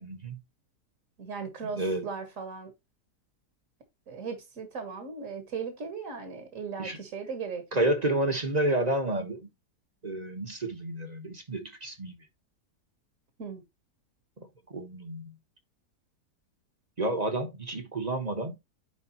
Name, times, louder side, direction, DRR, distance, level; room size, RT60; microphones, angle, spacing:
voice 1, 0.0-0.4 1.6-2.1 6.8-7.0 7.7-9.5 10.0-12.2 14.7-15.3 17.0-18.6, right 1 dB, 30° right, 1.1 m, -30 dB
voice 2, 1.2-2.7 4.1-7.9 13.4-13.6, right 5 dB, 55° right, 1.8 m, -37 dB
9.7 x 5.0 x 3.0 m
omnidirectional pair, 1.7 m